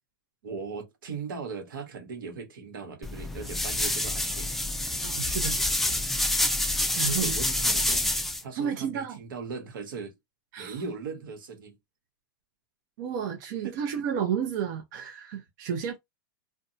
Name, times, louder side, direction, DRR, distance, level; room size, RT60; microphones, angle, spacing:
voice 1, 0.4-4.5 6.9-8.0 8.4-10.1 10.6-11.7 13.6-13.8, right 5 dB, 80° right, 1.1 m, -38 dB
sound 1, 3.0-8.4, left 1 dB, ahead, 0.3 m, -27 dB
voice 2, 5.0-5.6 7.0-7.4 8.5-9.2 10.5-10.8 13.0-16.0, right 8 dB, 55° right, 0.7 m, -31 dB
2.6 x 2.2 x 2.7 m
hypercardioid pair, 130°, 11 cm